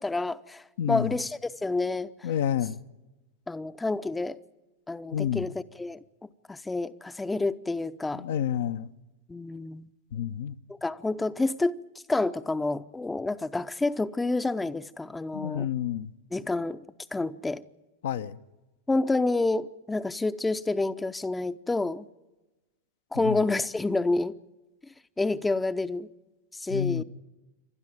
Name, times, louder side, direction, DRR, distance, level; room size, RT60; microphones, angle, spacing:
voice 1, 0.0-2.3 3.5-4.4 4.9-6.0 6.5-8.2 9.3-9.9 10.8-11.8 12.1-15.7 16.3-16.8 17.1-17.6 18.9-22.1 23.1-24.3 25.2-26.1 26.5-27.0, left 2 dB, 10° left, 0.7 m, -28 dB
voice 2, 0.8-1.1 2.2-2.8 5.1-5.5 8.1-8.9 10.1-10.5 15.3-16.1 18.0-18.4 23.2-23.4 26.7-27.0, left 9 dB, 60° left, 0.7 m, -29 dB
28.0 x 12.5 x 9.2 m
figure-of-eight pair, 90°, 0 cm